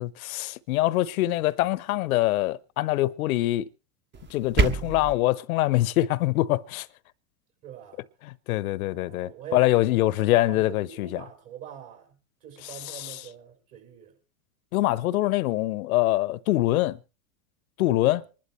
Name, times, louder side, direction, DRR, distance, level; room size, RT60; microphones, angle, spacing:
voice 1, 0.0-3.7 4.3-6.9 8.2-11.2 12.6-13.3 14.7-17.0 17.8-18.2, left 16 dB, 70° left, 0.8 m, -24 dB
sound 1, 4.1-5.1, right 4 dB, 25° right, 1.1 m, -26 dB
voice 2, 7.6-8.0 8.9-9.7 10.0-14.1 18.0-18.2, right 10 dB, 45° right, 6.4 m, -44 dB
25.5 x 11.5 x 3.2 m
hypercardioid pair, 115°, 44 cm